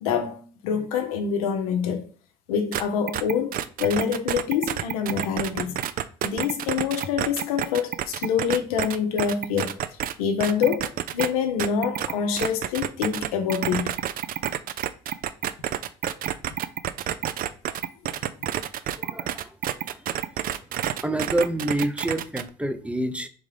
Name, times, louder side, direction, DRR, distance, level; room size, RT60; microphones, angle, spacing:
voice 1, 0.0-2.0 2.5-5.8 6.2-9.8 10.2-13.9, left 7 dB, 90° left, 0.6 m, -26 dB
sound 1, 2.7-2.8 3.1-10.1 10.4-11.3 11.6-22.5, right 11 dB, 50° right, 0.4 m, -28 dB
voice 2, 18.9-19.6 19.9-20.2 21.0-23.3, right 1 dB, 5° right, 0.6 m, -28 dB
3.8 x 3.6 x 3.3 m
hypercardioid pair, 60°, 18 cm